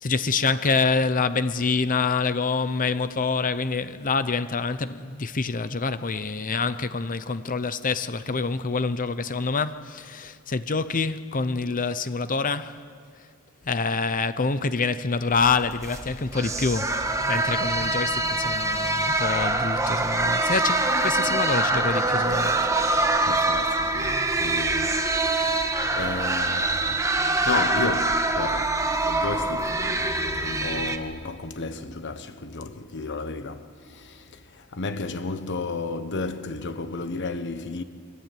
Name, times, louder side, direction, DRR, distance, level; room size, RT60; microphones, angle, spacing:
voice 1, 0.0-12.8 13.7-22.6, left 4 dB, 40° left, 0.8 m, -26 dB
sound 1, 15.3-31.0, right 2 dB, 15° right, 1.5 m, -24 dB
voice 2, 23.2-25.1 25.4-25.7 26.0-27.0 27.4-37.8, left 3 dB, 55° left, 1.2 m, -33 dB
25.0 x 25.0 x 9.3 m
head